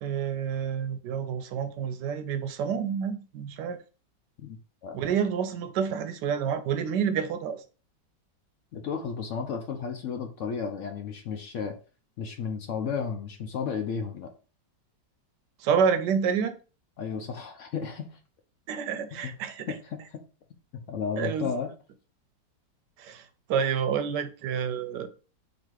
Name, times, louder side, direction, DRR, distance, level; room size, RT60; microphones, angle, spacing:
voice 1, 0.0-3.8 4.9-7.6 15.6-16.6 18.7-19.7 21.2-21.5 23.0-25.1, right 7 dB, 75° right, 1.2 m, -28 dB
voice 2, 8.7-11.7 12.2-14.3 17.0-18.2 19.2-19.3 19.7-20.2 20.9-21.7, left 6 dB, 70° left, 0.7 m, -33 dB
4.0 x 2.8 x 4.5 m
omnidirectional pair, 1.9 m